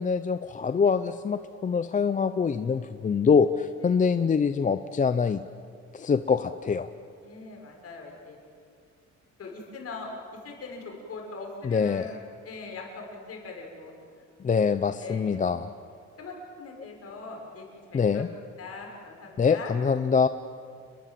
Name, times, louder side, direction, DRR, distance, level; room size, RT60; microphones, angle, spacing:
voice 1, 0.0-5.4 5.9-6.9 11.6-12.1 14.4-15.7 17.9-18.3 19.4-20.3, left 5 dB, 25° left, 11 dB, 0.6 m, -24 dB
voice 2, 7.2-8.4 9.4-10.1 10.4-13.9 15.0-15.4 16.2-18.2 18.6-19.7, left 3 dB, 50° left, 1 dB, 6.3 m, -41 dB
30.0 x 21.5 x 7.7 m, 2.3 s
cardioid pair, 140°, 30 cm